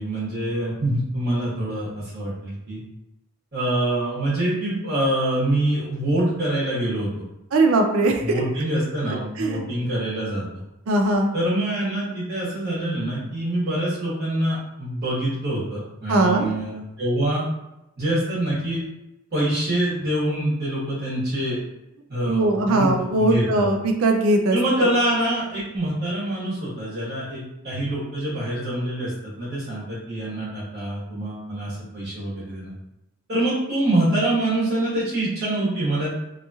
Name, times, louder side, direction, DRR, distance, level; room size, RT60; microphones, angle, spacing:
voice 1, 0.0-2.8 3.5-7.1 8.2-10.4 11.3-17.4 18.0-18.8 19.3-21.6 22.1-22.9 23.2-23.7 24.5-32.7 33.3-36.2, right 1 dB, 45° right, -10 dB, 1.2 m, -25 dB
voice 2, 7.5-8.2 9.4-9.6 10.9-11.3 16.1-16.5 22.2-24.6, right 2 dB, 65° right, 3 dB, 0.4 m, -20 dB
2.9 x 2.3 x 2.7 m, 0.88 s
head